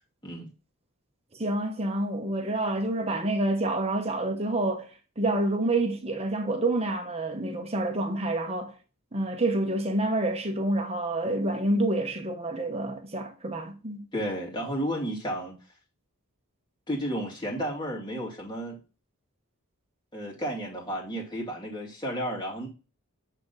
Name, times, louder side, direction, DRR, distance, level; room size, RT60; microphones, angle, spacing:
voice 1, 1.3-4.9 5.2-8.7 9.1-14.1, right 2 dB, 25° right, 1.0 m, -28 dB
voice 2, 14.1-15.6 16.9-18.8 20.1-22.7, equal, 20° left, 2.3 m, -32 dB
8.4 x 3.6 x 4.0 m
head